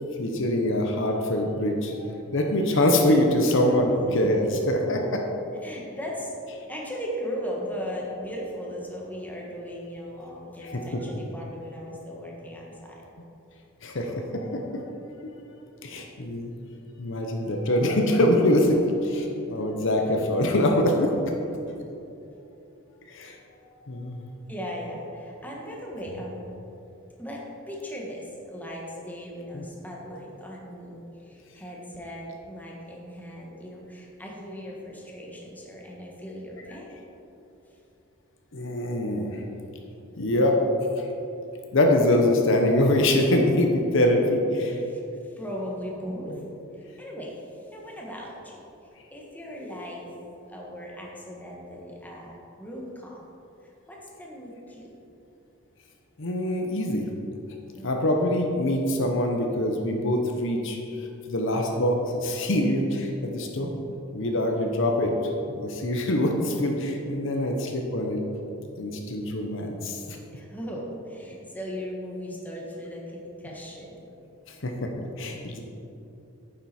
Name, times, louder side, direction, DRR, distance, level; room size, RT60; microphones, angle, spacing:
voice 1, 0.2-2.0 2.3-5.2 10.6-11.0 13.8-14.8 15.8-16.5 17.0-21.1 23.1-23.4 23.9-24.3 29.5-29.6 38.5-39.4 40.2-40.6 41.0-41.1 41.7-44.8 56.2-57.1 57.8-60.8 61.3-63.7 64.1-65.1 65.5-68.2 68.8-70.2 74.6-75.6, left 1 dB, 65° left, 2 dB, 0.9 m, -24 dB
voice 2, 5.6-6.3 6.7-13.0 20.0-20.1 24.5-26.5 27.2-37.0 43.8-44.0 44.8-46.4 46.7-48.6 49.1-50.1 50.5-53.2 53.6-54.9 57.7-58.0 63.6-63.9 70.3-74.1, equal, 10° left, -3 dB, 1.4 m, -38 dB
9.4 x 7.4 x 4.3 m, 2.8 s
head